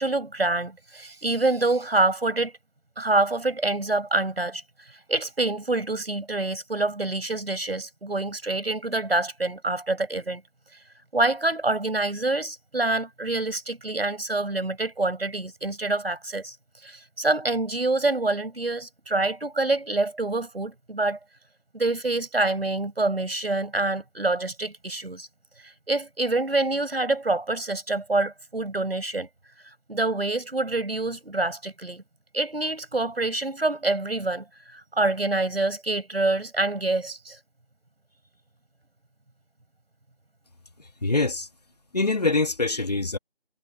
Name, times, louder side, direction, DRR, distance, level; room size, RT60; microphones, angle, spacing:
voice 1, 0.0-2.5 3.0-10.4 11.1-16.6 16.8-21.2 21.7-25.3 25.6-29.3 29.6-32.0 32.3-37.4, right 2 dB, 70° right, 7.6 m, -26 dB
voice 2, 41.0-41.5 41.9-43.2, left 3 dB, 40° left, 2.4 m, -24 dB
figure-of-eight pair, 175°, 31 cm